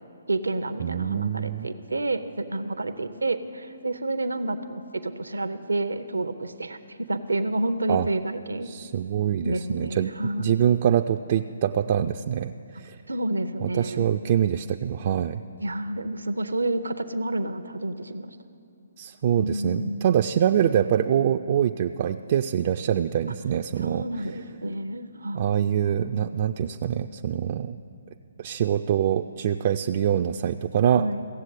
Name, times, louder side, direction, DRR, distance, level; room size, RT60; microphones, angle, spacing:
voice 1, 0.3-8.7 9.4-10.5 13.1-14.2 15.6-18.4 19.4-20.1 23.8-25.9 30.9-31.2, right 2 dB, 90° right, 9 dB, 0.6 m, -29 dB
voice 2, 0.8-1.7 7.9-8.1 8.7-10.1 10.4-13.0 13.6-15.4 19.0-24.0 25.3-27.8 28.4-31.1, right 9 dB, 45° right, 6 dB, 0.3 m, -24 dB
16.0 x 7.5 x 8.3 m, 2.6 s
figure-of-eight pair, 140°, 0 cm